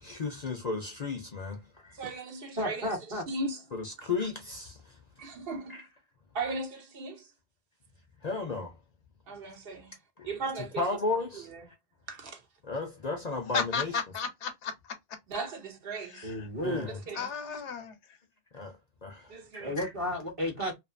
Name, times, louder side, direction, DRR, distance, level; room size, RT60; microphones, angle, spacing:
voice 1, 0.0-2.0 3.7-4.8 5.7-5.8 8.2-8.7 10.2-10.3 10.8-11.7 12.6-13.9 16.6-17.0 18.5-18.7 19.0-19.9, left 3 dB, 45° left, 0.6 m, -34 dB
voice 2, 1.9-2.9 3.3-3.6 4.0-4.1 5.2-5.8 6.3-7.3 9.3-10.0 10.2-11.0 11.3-11.6 12.1-12.4 15.3-16.3 17.1-17.6 19.3-19.7, right 3 dB, 60° right, 0.8 m, -37 dB
voice 3, 2.6-3.3 16.2-16.9 19.6-20.7, left 1 dB, 30° right, 0.9 m, -32 dB
voice 4, 13.5-14.7 16.0-16.5 17.2-18.0, left 5 dB, 85° left, 1.0 m, -34 dB
2.5 x 2.4 x 2.4 m
omnidirectional pair, 1.2 m